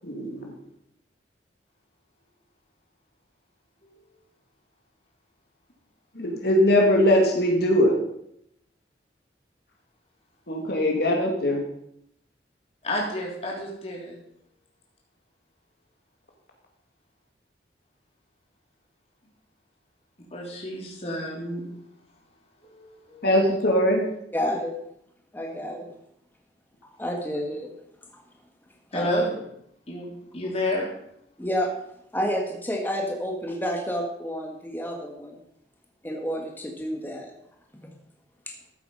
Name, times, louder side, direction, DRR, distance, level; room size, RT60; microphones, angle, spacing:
voice 1, 0.0-0.5 6.2-7.9 10.5-11.6 23.2-24.0, left 1 dB, 60° left, 0 dB, 2.7 m, -21 dB
voice 2, 12.8-14.1 20.3-21.6 22.6-23.3 25.4-25.6 28.9-29.4 29.9-30.9, left 1 dB, 35° left, -3 dB, 3.4 m, -30 dB
voice 3, 24.3-24.7 25.3-25.9 27.0-27.7 28.9-29.2 31.4-31.7 32.1-35.4 36.0-37.3, equal, 10° left, 1 dB, 1.8 m, -29 dB
14.0 x 8.4 x 5.6 m, 0.73 s
head